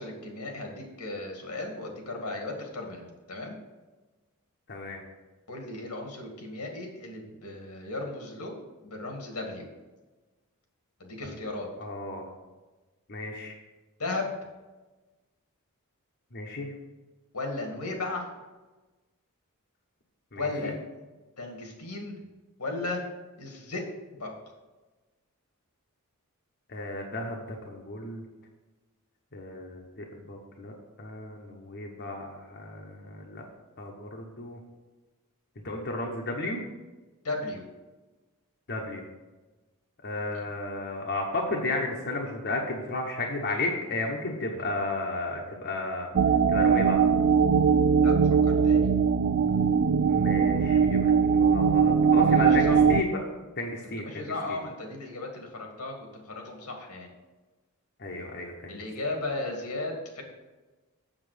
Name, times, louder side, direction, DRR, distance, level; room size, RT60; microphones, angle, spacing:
voice 1, 0.0-3.6 5.5-8.6 8.8-9.7 11.0-11.7 14.0-14.3 17.3-18.3 20.4-20.8 21.4-22.1 22.6-23.0 23.4-23.8 24.1-24.3 37.2-37.6 40.3-40.4 48.0-48.2 48.4-48.9 52.4-52.8 54.0-57.1 58.7-60.2, left 2 dB, 90° left, 2 dB, 2.2 m, -35 dB
voice 2, 4.7-5.0 11.8-12.3 13.1-13.6 16.3-16.7 20.3-20.8 26.7-28.2 29.3-33.5 33.8-34.6 35.6-36.6 38.7-39.0 40.0-46.1 46.5-47.0 50.1-53.2 53.6-54.6 58.0-58.8, left 2 dB, 50° left, 0 dB, 1.1 m, -33 dB
sound 1, 46.1-53.0, right 6 dB, 50° right, 0.3 m, -21 dB
7.5 x 7.2 x 5.1 m, 1.2 s
head